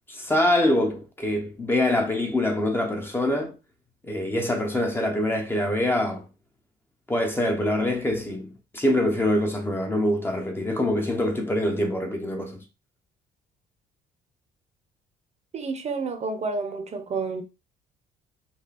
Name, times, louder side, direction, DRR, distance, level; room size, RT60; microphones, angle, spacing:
voice 1, 0.1-3.5 4.0-6.3 7.1-12.6, left 1 dB, 15° left, 1.1 m, -24 dB
voice 2, 15.5-17.4, right 4 dB, 40° right, 1.0 m, -30 dB
5.5 x 2.2 x 4.2 m
cardioid pair, 110°, 17 cm